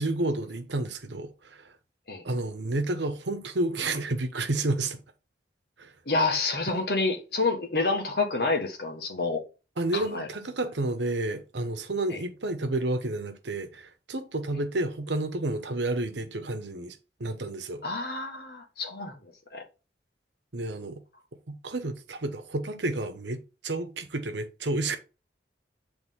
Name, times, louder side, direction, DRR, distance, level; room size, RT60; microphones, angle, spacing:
voice 1, 0.0-1.7 2.2-5.0 5.8-5.9 9.8-17.8 20.5-21.0 21.5-25.0, right 2 dB, 85° right, 1.1 m, -30 dB
voice 2, 6.1-9.4 9.9-10.3 12.1-12.2 17.8-19.6, left 3 dB, 60° left, 1.5 m, -28 dB
8.2 x 3.5 x 3.6 m
head